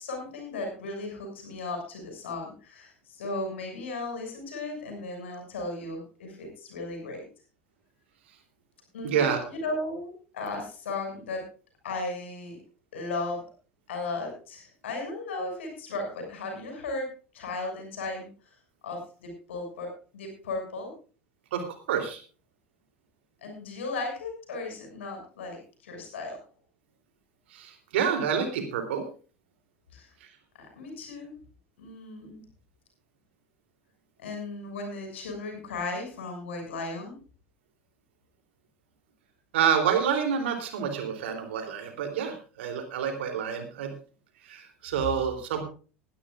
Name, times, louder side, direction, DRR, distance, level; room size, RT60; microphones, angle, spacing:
voice 1, 0.0-7.2 8.9-11.4 11.8-12.6 12.9-13.4 13.9-18.3 18.8-20.9 23.4-26.4 29.9-30.1 30.6-31.3 31.8-32.4 34.2-37.2, left 2 dB, 65° left, 4 dB, 6.8 m, -36 dB
voice 2, 9.0-9.4 21.5-22.2 27.5-29.0 39.5-43.9 44.4-45.6, right 7 dB, 65° right, 5 dB, 3.3 m, -28 dB
21.0 x 12.5 x 2.5 m, 0.37 s
figure-of-eight pair, 75°, 7 cm